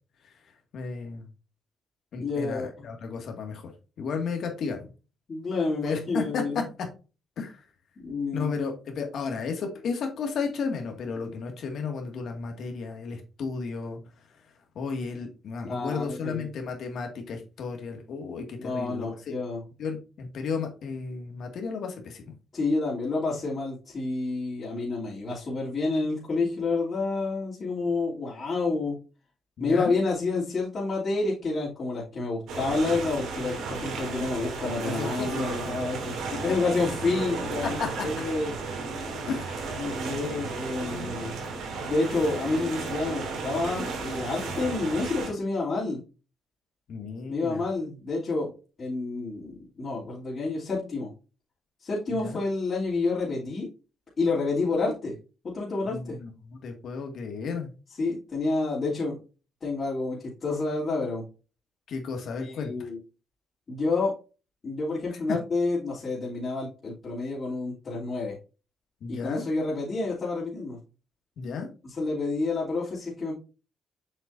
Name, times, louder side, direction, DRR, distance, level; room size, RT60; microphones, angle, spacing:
voice 1, 0.7-1.2 2.1-3.7 4.0-4.9 5.8-6.6 7.4-7.6 8.3-14.0 14.8-19.3 19.8-22.3 29.6-29.9 34.8-35.6 37.8-37.9 39.3-39.8 46.9-47.6 52.2-52.4 55.9-57.7 61.9-62.9 69.0-69.5 71.4-71.7, left 5 dB, 65° left, 4 dB, 1.9 m, -33 dB
voice 2, 2.2-2.9 5.3-6.6 8.0-8.5 15.6-16.5 18.6-19.6 22.5-29.0 29.6-38.6 39.8-41.3 41.8-46.0 47.3-48.5 48.8-51.1 51.8-53.7 54.2-55.1 55.5-56.2 58.0-59.2 59.6-61.2 62.4-63.0 63.7-64.1 64.6-68.4 69.1-70.8 71.8-73.3, left 3 dB, 45° left, -7 dB, 2.9 m, -29 dB
sound 1, 32.5-45.3, right 4 dB, 80° right, 2.5 m, -34 dB
7.5 x 6.0 x 2.6 m, 0.32 s
cardioid pair, 90°, 0 cm